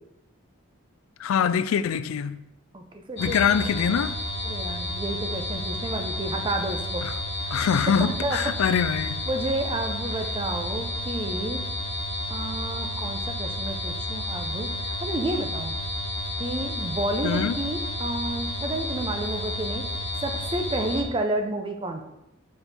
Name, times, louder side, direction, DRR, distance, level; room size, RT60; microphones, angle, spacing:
voice 1, 1.2-2.4 3.2-4.2 7.0-7.1 7.5-9.3 17.2-17.6, left 7 dB, 85° left, 0.3 m, -24 dB
voice 2, 2.7-3.4 3.8-3.9 4.4-7.0 7.4-7.6 8.0-8.4 9.3-11.7 12.3-15.7 16.4-19.9 20.2-22.0, right 1 dB, 25° right, 0.6 m, -31 dB
sound 1, 3.2-21.0, left 1 dB, 60° left, 0.9 m, -31 dB
5.5 x 4.5 x 4.2 m
head